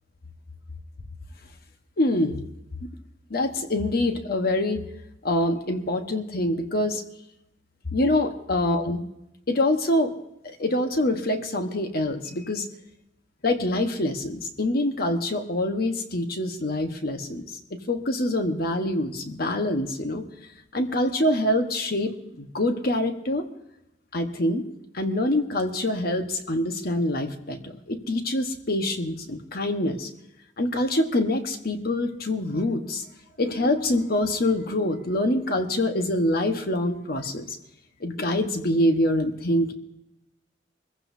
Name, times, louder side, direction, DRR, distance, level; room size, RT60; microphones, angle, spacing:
voice 1, 2.0-2.4 2.8-2.9 3.3-4.8 5.2-7.0 7.9-9.0 9.5-10.1 10.4-12.7 13.4-20.3 20.7-23.4 24.1-24.6 24.9-30.1 30.6-33.0 33.4-37.6 38.0-39.7, left 1 dB, 55° left, 5 dB, 1.3 m, -25 dB
23.5 x 15.5 x 2.8 m, 0.87 s
head